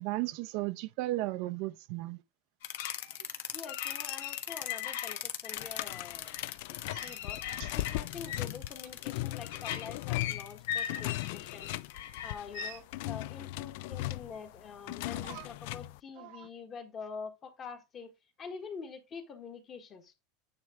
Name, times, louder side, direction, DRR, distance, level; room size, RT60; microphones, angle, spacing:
voice 1, 0.0-2.2 6.9-7.2 7.6-7.7 12.5-12.8 15.1-15.5 16.2-16.5, right 18 dB, 55° right, 0.6 m, -36 dB
sound 1, 2.6-12.7, left 11 dB, 85° left, 1.2 m, -38 dB
voice 2, 3.5-11.7 12.2-20.1, left 5 dB, 25° left, 1.3 m, -46 dB
sound 2, 5.6-16.0, left 18 dB, 60° left, 0.3 m, -38 dB
9.6 x 3.3 x 4.8 m
supercardioid pair, 170°, 0 cm